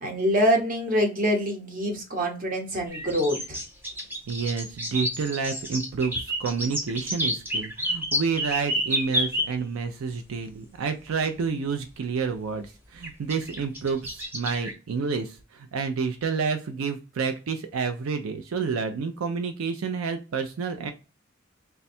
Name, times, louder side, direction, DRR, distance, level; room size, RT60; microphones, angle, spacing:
voice 1, 0.0-3.6, equal, 40° right, 3 dB, 0.9 m, -25 dB
sound 1, 2.9-9.5 11.2-11.3 13.0-14.7, equal, 10° right, 0.6 m, -29 dB
voice 2, 4.3-20.9, right 5 dB, 80° right, 7 dB, 0.4 m, -29 dB
3.3 x 2.2 x 4.2 m, 0.33 s
head